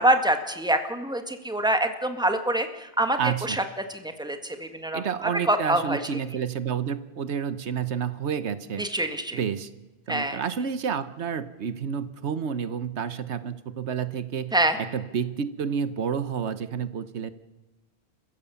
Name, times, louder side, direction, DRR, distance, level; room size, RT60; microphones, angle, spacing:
voice 1, 0.0-3.6 3.9-6.0 8.8-9.4 10.1-10.4 14.5-14.8, right 1 dB, 5° right, 7 dB, 1.6 m, -25 dB
voice 2, 3.2-3.6 4.9-8.8 9.3-9.7 10.1-17.3, right 7 dB, 85° right, 13 dB, 1.3 m, -30 dB
29.5 x 15.5 x 7.1 m, 1.1 s
omnidirectional pair, 1.1 m